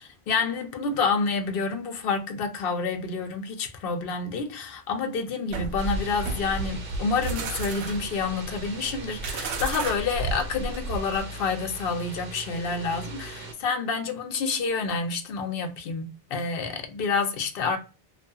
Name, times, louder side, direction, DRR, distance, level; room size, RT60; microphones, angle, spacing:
voice 1, 0.3-17.8, left 4 dB, 65° left, 0.7 m, -28 dB
sound 1, 5.5-11.2, right 3 dB, 85° right, 0.8 m, -32 dB
sound 2, 5.8-13.5, equal, 60° right, 1.0 m, -39 dB
2.6 x 2.4 x 2.2 m
omnidirectional pair, 1.1 m